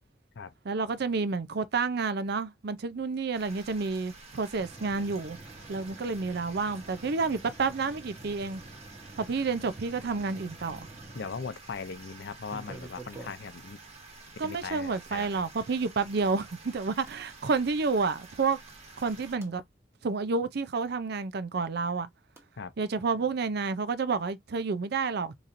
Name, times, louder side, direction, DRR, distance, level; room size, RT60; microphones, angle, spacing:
voice 1, 0.6-5.4 5.7-8.6 9.2-10.9 14.4-18.6 19.0-19.6 20.0-22.1 22.8-25.4, right 4 dB, 60° right, 0.5 m, -30 dB
sound 1, 3.3-19.4, right 3 dB, 35° right, 1.3 m, -50 dB
sound 2, 4.6-11.6 12.4-13.6 15.1-15.2 17.1-17.2 19.0-19.5 22.4-22.5, right 2 dB, 15° right, 1.1 m, -48 dB
voice 2, 11.1-13.8 14.4-15.4 22.6-22.7, left 5 dB, 65° left, 0.5 m, -39 dB
4.1 x 3.0 x 2.5 m
head